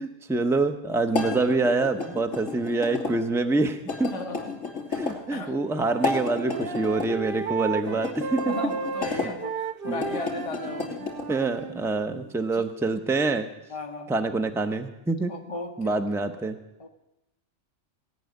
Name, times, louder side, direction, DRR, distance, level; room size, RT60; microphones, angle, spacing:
voice 1, 0.0-4.1 4.9-8.5 9.1-9.4 9.9-10.0 11.3-13.5 14.1-15.3 15.8-16.6, right 3 dB, 5° right, 7 dB, 0.6 m, -26 dB
sound 1, 1.1-3.1 3.9-5.2 5.9-7.1 8.0-9.3 9.9-11.3, left 4 dB, 90° left, 3.4 m, -32 dB
voice 2, 4.0-4.6 5.3-5.5 7.9-8.0 8.5-11.1 12.1-12.2 12.5-12.6 13.7-14.1 15.3-16.3 16.8-16.9, left 2 dB, 25° left, 3 dB, 1.3 m, -36 dB
Wind instrument woodwind instrument, 5.4-11.9, right 6 dB, 55° right, 0.9 m, -34 dB
18.0 x 6.2 x 9.4 m, 0.94 s
omnidirectional pair, 1.3 m